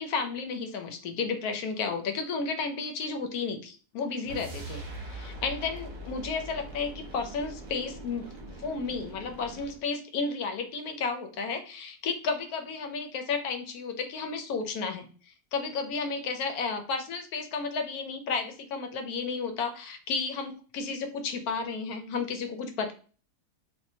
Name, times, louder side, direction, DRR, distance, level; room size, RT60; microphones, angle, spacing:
voice 1, 0.0-8.3 8.6-22.9, left 4 dB, 90° left, 6 dB, 1.1 m, -33 dB
sound 1, 4.2-9.9, right 1 dB, 40° right, 0.9 m, -42 dB
3.6 x 2.5 x 2.7 m, 0.39 s
omnidirectional pair, 1.6 m